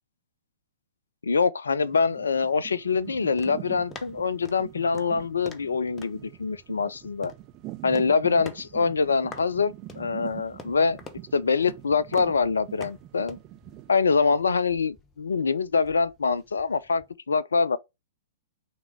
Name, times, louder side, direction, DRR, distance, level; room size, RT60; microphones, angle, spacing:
voice 1, 1.2-7.3 7.8-11.0 11.3-13.4 13.9-17.8, left 5 dB, 70° left, 0.5 m, -24 dB
sound 1, 1.8-13.9, right 18 dB, 35° right, 0.5 m, -45 dB
sound 2, 3.0-17.2, left 4 dB, 20° left, 1.0 m, -48 dB
6.1 x 3.7 x 4.5 m
figure-of-eight pair, 105°, 0 cm